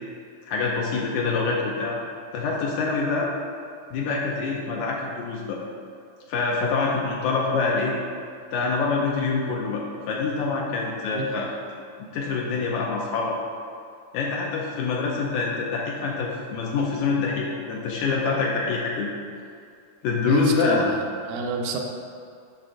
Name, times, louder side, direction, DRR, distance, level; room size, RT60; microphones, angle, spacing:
voice 1, 0.5-2.0 2.3-3.3 3.9-5.6 6.3-7.9 8.5-11.5 12.1-13.4 14.1-19.1 20.0-20.9, left 4 dB, 80° left, -2 dB, 2.0 m, -25 dB
voice 2, 20.3-21.8, right 4 dB, 80° right, 2 dB, 2.0 m, -29 dB
8.3 x 5.8 x 2.5 m, 2.4 s
omnidirectional pair, 3.5 m